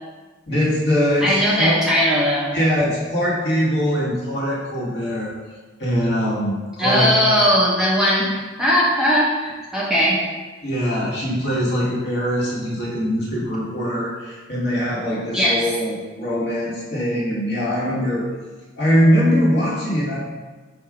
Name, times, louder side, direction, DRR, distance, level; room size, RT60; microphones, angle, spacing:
voice 1, 0.5-1.8 2.5-5.3 5.8-7.3 10.6-18.3 18.8-20.2, equal, 55° left, -6 dB, 1.2 m, -22 dB
voice 2, 1.2-2.5 6.8-8.3 8.6-10.2 15.3-15.6, equal, 5° right, -7 dB, 0.6 m, -18 dB
4.6 x 2.3 x 4.7 m, 1.3 s
head